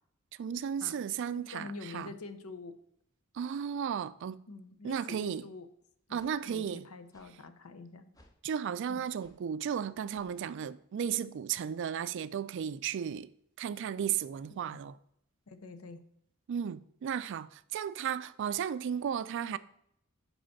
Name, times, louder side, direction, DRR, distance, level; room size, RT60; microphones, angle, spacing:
voice 1, 0.4-2.1 3.3-4.4 4.8-5.4 6.1-6.8 8.4-13.3 13.6-14.9 16.5-19.6, right 8 dB, 60° right, 0.3 m, -34 dB
voice 2, 1.3-2.8 4.5-5.7 6.1-8.1 8.9-9.0 14.5-14.8 15.5-16.0, left 3 dB, 90° left, 0.7 m, -46 dB
sound 1, 5.3-5.4 6.2-6.4 7.1-7.3 8.1-8.4 9.2-9.4 10.1-10.4, left 1 dB, 15° left, 0.6 m, -61 dB
5.1 x 4.9 x 5.7 m
head